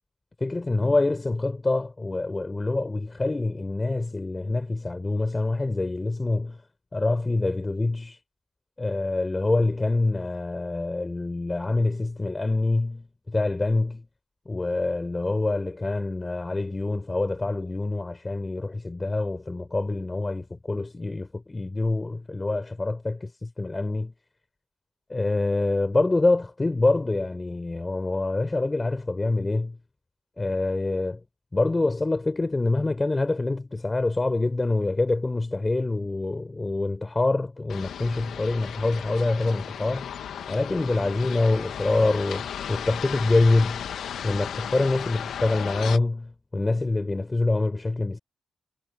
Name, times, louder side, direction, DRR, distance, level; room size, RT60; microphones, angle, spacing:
voice 1, 0.4-6.6 6.9-8.2 8.8-14.1 14.5-24.1 25.1-29.8 30.4-31.2 31.5-40.1 40.5-43.9 44.2-48.2, left 2 dB, 25° left, 5.4 m, -26 dB
sound 1, 37.7-46.0, left 8 dB, 85° left, 1.5 m, -35 dB
cardioid pair, 70°, 0 cm